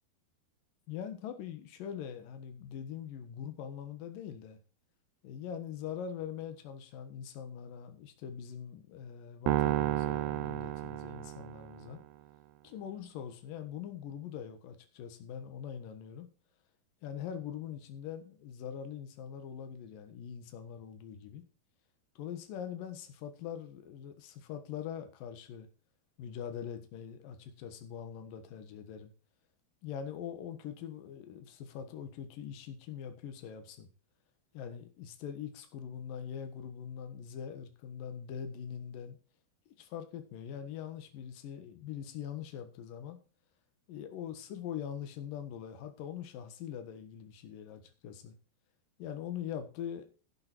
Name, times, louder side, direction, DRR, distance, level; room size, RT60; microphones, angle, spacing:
voice 1, 0.9-4.6 5.2-12.0 12.6-16.3 17.0-21.4 22.2-25.7 26.2-29.1 29.8-33.9 34.5-39.2 39.8-43.2 43.9-48.3 49.0-50.1, left 8 dB, 65° left, 2.8 m, -42 dB
sound 1, 9.5-11.9, right 14 dB, 80° right, 2.6 m, -31 dB
12.0 x 8.8 x 4.5 m
omnidirectional pair, 4.9 m